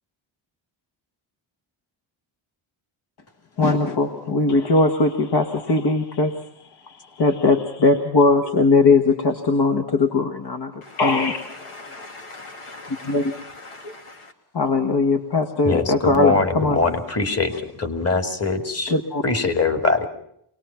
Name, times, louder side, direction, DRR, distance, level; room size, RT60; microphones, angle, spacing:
voice 1, 3.6-10.7 11.0-11.7 12.9-13.3 14.5-16.8 18.9-19.2, left 3 dB, 50° left, 5 dB, 1.7 m, -20 dB
voice 2, 10.8-14.3, left 2 dB, 90° left, 4 dB, 2.5 m, -40 dB
voice 3, 15.6-18.9 19.2-20.1, left 3 dB, 30° left, 7 dB, 2.5 m, -22 dB
24.5 x 19.5 x 5.8 m, 0.71 s
cardioid pair, 105°, 50 cm